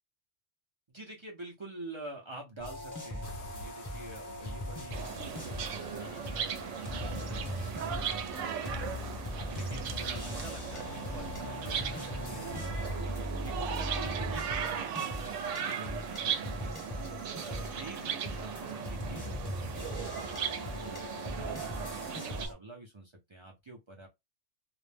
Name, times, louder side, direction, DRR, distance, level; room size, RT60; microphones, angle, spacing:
voice 1, 0.9-24.1, right 2 dB, 40° right, 0.4 m, -48 dB
sound 1, 2.6-22.5, left 1 dB, 20° left, 0.6 m, -40 dB
sound 2, 3.2-13.0, left 4 dB, 65° left, 0.7 m, -49 dB
sound 3, 4.9-22.5, right 8 dB, 80° right, 0.9 m, -37 dB
2.4 x 2.0 x 3.2 m
omnidirectional pair, 1.2 m